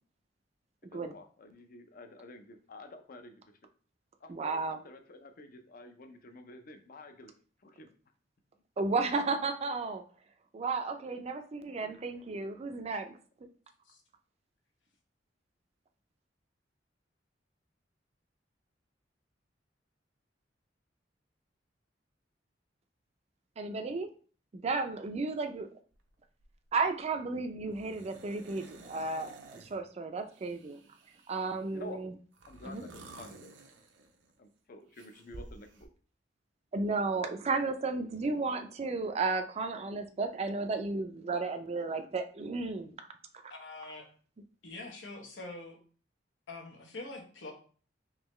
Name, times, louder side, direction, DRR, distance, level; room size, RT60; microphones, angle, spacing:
voice 1, 0.9-3.4 4.2-7.3 7.6-7.9 12.8-12.9 31.7-32.0 32.5-33.5 34.4-35.9, left 2 dB, 50° left, 7 dB, 0.5 m, -50 dB
voice 2, 4.3-4.8 8.8-10.0 10.5-13.2 23.6-24.1 24.5-25.7 26.7-30.8 31.3-32.1 32.6-32.8 36.7-43.0 43.4-43.5, right 3 dB, 35° right, 7 dB, 0.4 m, -33 dB
sound 1, 25.9-26.1 26.4-26.8 27.7-29.8 30.3-31.7 32.3-34.4 34.9-35.9, right 2 dB, 85° right, 0.6 m, -52 dB
voice 3, 43.5-44.1 44.6-45.8 46.5-47.5, left 2 dB, 90° left, 2 dB, 0.9 m, -44 dB
3.7 x 3.0 x 3.0 m, 0.42 s
head